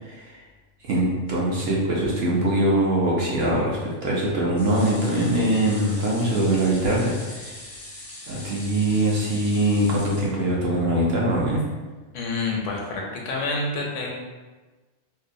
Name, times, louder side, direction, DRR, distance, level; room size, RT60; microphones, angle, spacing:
voice 1, 0.0-0.4 0.9-7.5 8.3-11.6, right 1 dB, 65° right, -4 dB, 0.7 m, -22 dB
sound 1, 4.5-10.9 11.3-11.4 11.7-11.8, left 2 dB, 50° left, 0.5 m, -41 dB
voice 2, 12.1-14.1, left 3 dB, 75° left, -1 dB, 0.9 m, -28 dB
2.6 x 2.1 x 2.5 m, 1.3 s
omnidirectional pair, 1.3 m